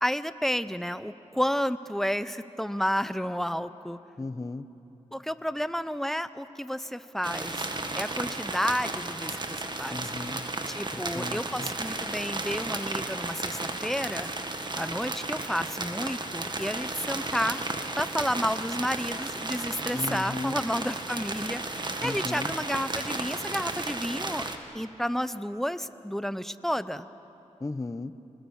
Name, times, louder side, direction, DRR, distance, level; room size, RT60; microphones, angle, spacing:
voice 1, 0.0-4.0 5.1-7.7 8.0-10.0 10.7-14.3 14.8-17.6 18.0-24.5 24.7-27.1, equal, 5° left, 14 dB, 0.8 m, -31 dB
voice 2, 4.2-4.7 9.9-10.5 10.9-11.7 19.9-20.6 22.0-22.5 27.6-28.2, left 3 dB, 25° left, 13 dB, 0.9 m, -36 dB
sound 1, 7.2-24.6, right 2 dB, 40° right, 1.9 m, -34 dB
29.0 x 20.5 x 7.3 m, 3.0 s
cardioid pair, 65°, 12 cm